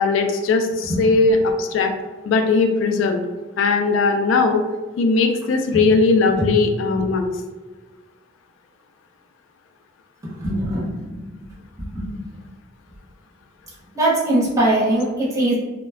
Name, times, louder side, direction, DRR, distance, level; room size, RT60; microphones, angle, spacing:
voice 1, 0.0-1.9 2.3-3.2 3.6-4.6 5.0-7.2, left 3 dB, 80° left, 5 dB, 0.3 m, -18 dB
voice 2, 10.4-10.9 11.9-12.1 13.9-15.6, right 1 dB, 15° right, -8 dB, 0.9 m, -20 dB
2.1 x 2.1 x 3.4 m, 1.2 s
head